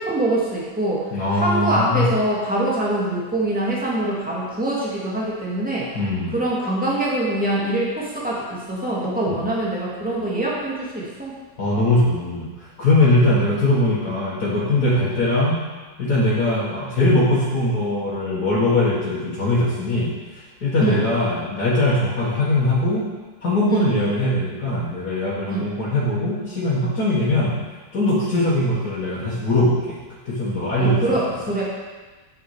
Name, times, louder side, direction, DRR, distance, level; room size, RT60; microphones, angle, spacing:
voice 1, 0.0-5.9 6.3-11.4 20.8-21.0 23.7-23.9 25.5-25.7 27.2-27.3 28.3-28.4 30.8-31.6, right 1 dB, 5° right, -6 dB, 2.1 m, -24 dB
voice 2, 1.1-2.1 5.9-6.3 9.3-9.4 11.6-15.6 16.0-23.0 23.4-27.5 27.9-30.0 30.3-31.2, left 1 dB, 80° left, -9 dB, 2.2 m, -21 dB
9.1 x 6.7 x 4.9 m, 1.3 s
omnidirectional pair, 1.7 m